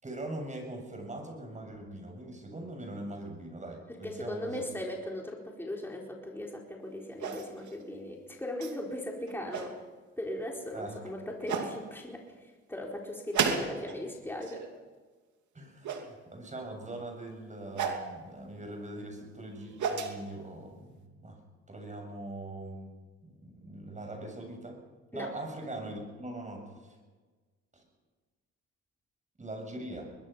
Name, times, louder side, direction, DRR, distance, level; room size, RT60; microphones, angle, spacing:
voice 1, 0.0-4.6 10.7-11.0 15.5-21.4 21.7-22.9 23.2-24.8 25.1-27.0 27.7-27.8 29.4-30.1, right 1 dB, 25° right, 3 dB, 7.3 m, -42 dB
voice 2, 3.9-9.7 10.2-12.2 12.7-14.7 25.1-25.3, left 1 dB, 5° left, -1 dB, 4.4 m, -38 dB
sound 1, 7.2-7.7 8.6-8.7 9.3-9.7 10.8-10.9 11.5-11.7 13.3-14.0 14.3-14.7 15.8-16.1 17.8-18.1 19.4-20.1, right 6 dB, 70° right, 2.9 m, -32 dB
23.0 x 21.0 x 5.7 m, 1.3 s
cardioid pair, 90°, 30 cm